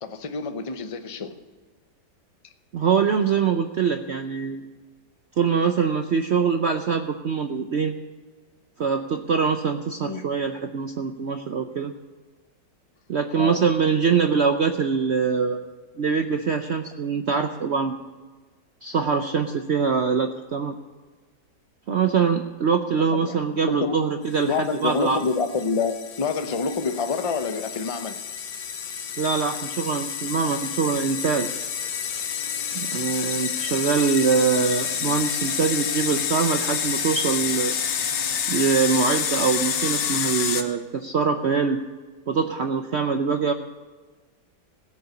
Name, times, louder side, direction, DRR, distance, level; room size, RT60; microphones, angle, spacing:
voice 1, 0.0-1.4 10.1-10.2 13.3-13.6 23.1-23.4 23.7-24.0 24.5-28.2, left 4 dB, 35° left, 8 dB, 0.5 m, -27 dB
voice 2, 2.7-4.6 5.4-7.9 8.8-11.9 13.1-15.6 16.0-17.9 18.8-20.7 21.9-25.2 29.2-31.5 32.7-37.7 38.5-41.8 42.3-43.5, right 5 dB, 65° right, 6 dB, 0.7 m, -23 dB
sound 1, 24.6-40.6, left 8 dB, 80° left, 1.6 m, -29 dB
16.5 x 6.8 x 8.2 m, 1.3 s
omnidirectional pair, 1.9 m